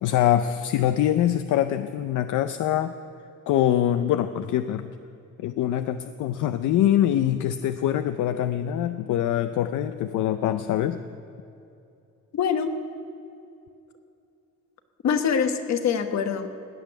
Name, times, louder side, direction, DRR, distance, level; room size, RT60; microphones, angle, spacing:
voice 1, 0.0-2.9 3.5-4.9 5.4-11.0, left 11 dB, 80° left, 10 dB, 0.6 m, -24 dB
voice 2, 12.3-12.7 15.0-16.5, left 7 dB, 65° left, 7 dB, 1.3 m, -24 dB
17.0 x 6.1 x 10.0 m, 2.6 s
cardioid pair, 90°, 30 cm